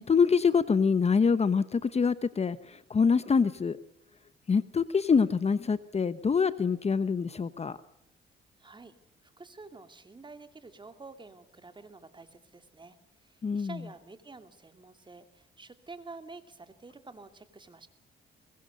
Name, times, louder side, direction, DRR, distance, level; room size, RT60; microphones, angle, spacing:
voice 1, 0.0-3.8 4.5-7.8 13.4-13.8, left 5 dB, 30° left, 14 dB, 1.1 m, -25 dB
voice 2, 8.6-8.9 9.2-13.0 13.2-17.9, right 3 dB, 25° right, 9 dB, 2.6 m, -49 dB
23.0 x 21.0 x 6.7 m, 0.75 s
cardioid pair, 90°, 20 cm